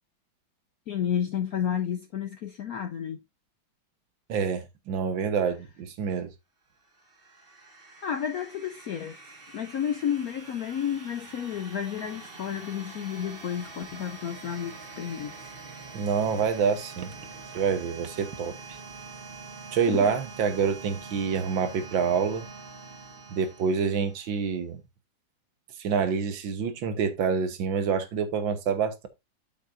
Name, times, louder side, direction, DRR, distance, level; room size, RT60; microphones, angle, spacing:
voice 1, 0.9-3.2 8.0-15.4 19.9-20.1, left 9 dB, 70° left, 0.8 m, -31 dB
voice 2, 4.3-6.3 15.9-17.1 17.5-18.8 19.7-22.5 23.3-24.8 25.8-29.1, right 6 dB, 75° right, 1.8 m, -27 dB
sound 1, 6.8-24.4, right 4 dB, 30° right, 1.8 m, -45 dB
8.4 x 7.4 x 2.6 m
omnidirectional pair, 2.2 m